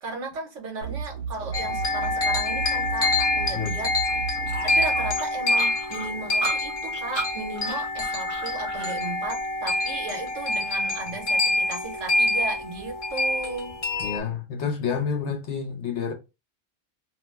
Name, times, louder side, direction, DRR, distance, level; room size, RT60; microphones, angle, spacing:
voice 1, 0.0-3.9 4.6-13.8, right 3 dB, 70° right, 1.2 m, -35 dB
sound 1, 0.8-5.2, right 6 dB, 90° right, 1.0 m, -34 dB
sound 2, 1.5-14.2, left 2 dB, 40° left, 0.6 m, -26 dB
sound 3, 4.5-9.0, right 3 dB, 35° right, 0.6 m, -36 dB
voice 2, 14.0-16.1, left 6 dB, 65° left, 0.9 m, -29 dB
2.6 x 2.1 x 3.1 m
omnidirectional pair, 1.3 m